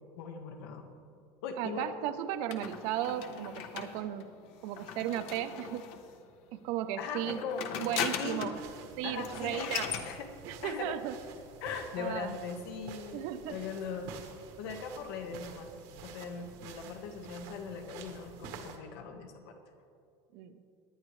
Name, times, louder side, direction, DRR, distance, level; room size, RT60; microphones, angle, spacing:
voice 1, 0.2-0.9 1.4-1.9 7.0-7.7 8.2-8.4 9.0-9.7 10.0-10.3 10.6-10.9 11.6-14.1 14.6-15.7 16.0-19.6, left 5 dB, 85° left, 4 dB, 1.5 m, -40 dB
voice 2, 1.6-4.3 4.6-5.9 6.5-7.4 7.8-8.6 9.0-9.9 10.5-11.1 12.0-12.4 13.1-13.6 20.3-20.6, right 11 dB, 60° right, 10 dB, 0.7 m, -35 dB
sound 1, 2.5-6.2 7.1-8.7 8.9-9.0 9.2-10.1, left 8 dB, 55° left, 0.9 m, -38 dB
sound 2, 8.5-18.8, right 5 dB, 75° right, 1.4 m, -50 dB
19.0 x 10.5 x 3.2 m, 2.4 s
cardioid pair, 175°, 13 cm